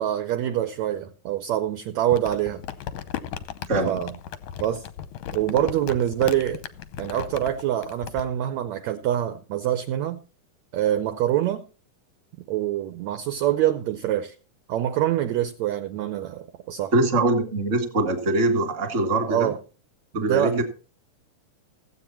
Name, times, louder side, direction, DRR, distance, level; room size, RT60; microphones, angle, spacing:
voice 1, 0.0-2.6 3.8-4.1 4.6-4.8 5.3-6.6 7.0-10.2 10.7-11.6 12.5-14.3 14.7-16.9 19.3-19.6 20.1-20.6, right 12 dB, 75° right, 1.7 m, -25 dB
Crumpling crinkling, 2.1-8.2, left 10 dB, 75° left, 1.7 m, -36 dB
voice 2, 3.7-4.0 16.9-19.5 20.1-20.6, right 2 dB, 25° right, 2.0 m, -23 dB
16.0 x 8.3 x 4.4 m
omnidirectional pair, 4.0 m